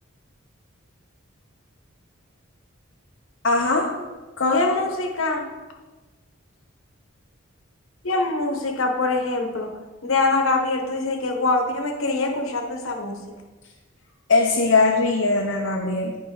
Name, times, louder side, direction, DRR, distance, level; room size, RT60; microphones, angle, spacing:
voice 1, 3.4-3.9 4.4-4.6 14.3-16.2, left 3 dB, 60° left, -1 dB, 0.6 m, -20 dB
voice 2, 4.5-5.4 8.0-9.7 10.0-13.2, left 3 dB, 75° left, 3 dB, 1.0 m, -24 dB
9.1 x 5.2 x 3.8 m, 1.2 s
head